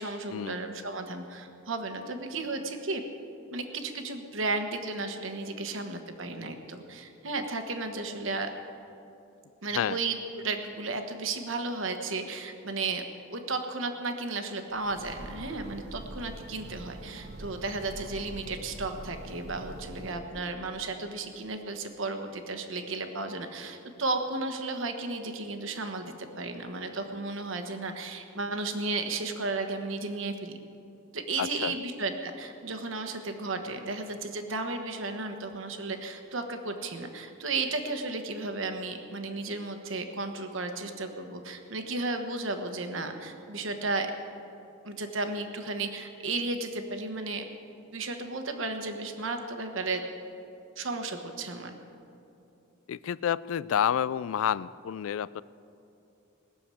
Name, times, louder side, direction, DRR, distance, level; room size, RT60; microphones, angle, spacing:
voice 1, 0.0-3.0 3.5-8.5 9.6-13.0 13.3-30.6 31.1-44.1 44.8-47.4 47.9-50.0 50.8-51.8, right 3 dB, 70° right, 6 dB, 1.3 m, -34 dB
Train, 14.7-20.5, right 1 dB, 55° right, 1.0 m, -44 dB
voice 2, 31.4-31.7 52.9-55.4, left 9 dB, 75° left, 20 dB, 0.3 m, -29 dB
20.0 x 7.1 x 8.4 m, 2.8 s
head